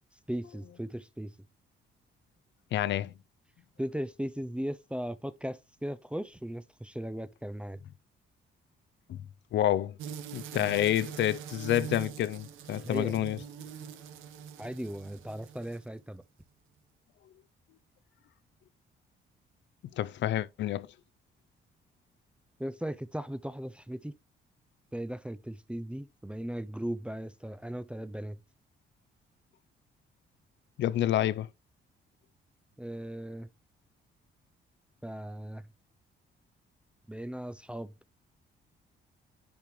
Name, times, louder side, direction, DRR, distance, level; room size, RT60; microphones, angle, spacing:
voice 1, 0.3-1.3 3.8-7.8 10.6-10.8 12.8-13.1 14.6-16.2 22.6-24.2 24.9-28.4 32.8-33.5 35.0-35.7 37.1-37.9, equal, 5° right, 0.4 m, -37 dB
voice 2, 2.7-3.1 9.1-9.2 9.5-10.0 10.3-13.4 20.0-20.9 30.8-31.5, left 12 dB, 65° left, 0.5 m, -28 dB
sound 1, 10.0-16.0, right 8 dB, 85° right, 0.9 m, -43 dB
10.0 x 3.7 x 3.0 m
cardioid pair, 90°, 20 cm